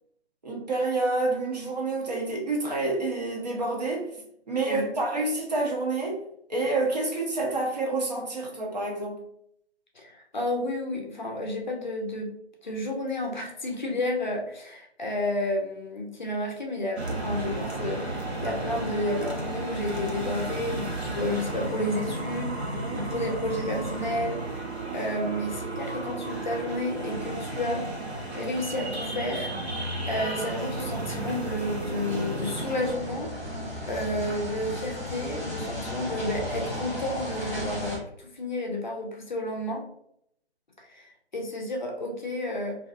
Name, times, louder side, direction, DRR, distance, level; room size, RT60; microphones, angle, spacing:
voice 1, 0.4-4.1 4.5-6.2 6.5-9.2, right 2 dB, 40° right, -2 dB, 0.6 m, -28 dB
voice 2, 10.0-12.3 12.6-27.9 28.3-29.5 29.8-33.3 33.9-39.8 40.9-42.8, left 1 dB, 45° left, 1 dB, 0.5 m, -31 dB
sound 1, 17.0-32.9, right 2 dB, 75° right, 0.8 m, -33 dB
sound 2, 32.8-38.0, left 1 dB, 5° right, 0.9 m, -34 dB
2.4 x 2.3 x 2.4 m, 0.71 s
figure-of-eight pair, 160°, 33 cm